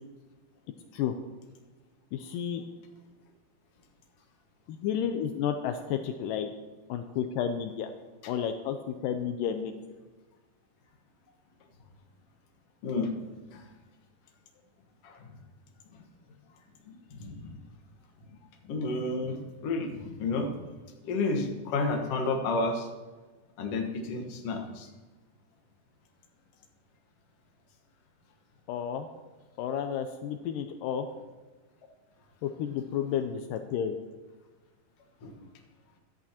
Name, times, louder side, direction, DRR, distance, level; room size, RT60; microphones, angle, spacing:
voice 1, 2.1-2.6 4.7-6.5 6.9-7.9 8.3-8.8 9.0-9.7 28.7-29.1 29.6-31.1 32.4-34.0, left 8 dB, 85° left, 7 dB, 1.9 m, -31 dB
voice 2, 15.0-15.4 15.9-16.0 16.9-17.6 18.6-20.5 21.0-22.9 23.6-24.9 35.2-35.4, left 3 dB, 55° left, 2 dB, 1.8 m, -31 dB
16.5 x 11.0 x 2.9 m, 1.3 s
omnidirectional pair, 4.4 m